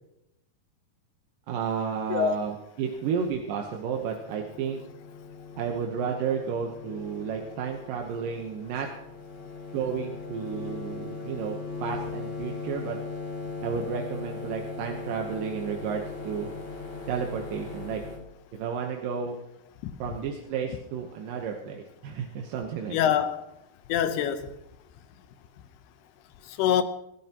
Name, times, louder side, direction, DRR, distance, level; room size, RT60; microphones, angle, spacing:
voice 1, 1.5-4.8 5.6-8.9 9.7-13.0 13.6-16.5 17.1-18.0 18.5-19.4 20.0-23.0, right 7 dB, 70° right, 2.5 m, -32 dB
sound 1, 3.1-18.2, left 4 dB, 45° left, 3.7 m, -39 dB
voice 2, 22.9-23.4 23.9-24.5 26.5-26.8, left 9 dB, 85° left, 2.9 m, -24 dB
26.0 x 13.0 x 3.0 m
omnidirectional pair, 4.5 m